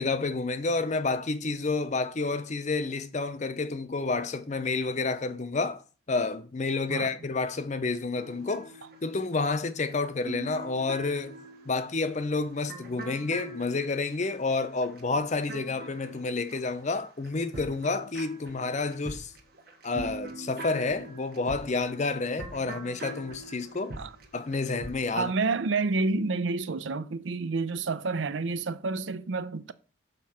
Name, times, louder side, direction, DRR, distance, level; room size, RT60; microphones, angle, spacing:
voice 1, 0.0-5.8 6.1-8.7 9.0-11.4 11.7-19.3 19.8-23.9 24.3-25.3, left 3 dB, 40° left, 0.6 m, -29 dB
sound 1, 8.2-17.0 17.2-25.1, right 2 dB, 55° right, 1.1 m, -43 dB
voice 2, 25.1-29.7, right 3 dB, 80° right, 0.5 m, -29 dB
6.5 x 3.6 x 5.7 m
head